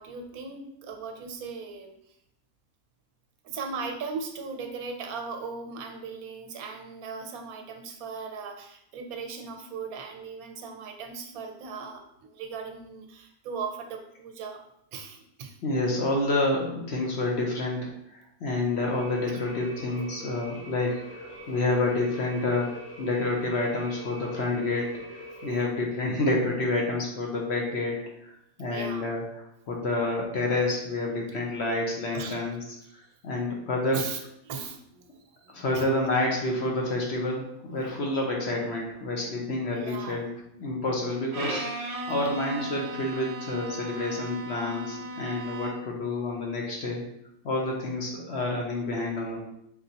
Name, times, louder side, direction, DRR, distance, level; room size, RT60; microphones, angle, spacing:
voice 1, 0.0-1.9 3.4-14.6 14.9-15.6 21.4-21.5 28.6-29.1 31.1-31.2 32.1-32.4 32.8-33.0 33.9-34.2 34.4-35.1 35.4-35.9 39.7-40.2, right 5 dB, 80° right, 4 dB, 1.1 m, -38 dB
voice 2, 15.6-34.0 35.5-40.3 40.5-41.7 42.1-47.0 47.4-49.4, left 2 dB, 55° left, -1 dB, 0.9 m, -29 dB
sound 1, 18.8-25.6, right 1 dB, 15° left, 0.5 m, -43 dB
Bowed string instrument, 41.3-46.0, equal, 40° right, 0.5 m, -36 dB
4.0 x 3.4 x 2.8 m, 0.76 s
omnidirectional pair, 1.5 m